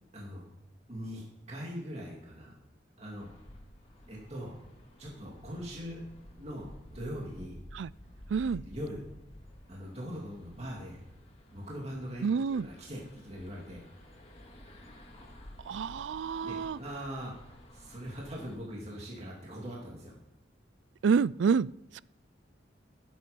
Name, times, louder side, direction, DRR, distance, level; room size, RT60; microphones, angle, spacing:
voice 1, 0.9-2.5 3.0-3.3 4.1-4.6 5.0-6.0 6.3-7.6 8.7-9.0 9.7-11.0 11.5-13.8 16.4-20.1, equal, 35° right, -3 dB, 2.6 m, -41 dB
sound 1, 3.1-18.6, left 1 dB, 35° left, 2.1 m, -53 dB
voice 2, 8.3-8.6 12.2-12.7 15.7-16.8 21.0-21.7 21.9-22.0, right 6 dB, 80° right, 21 dB, 0.4 m, -28 dB
14.5 x 8.7 x 5.2 m, 0.87 s
head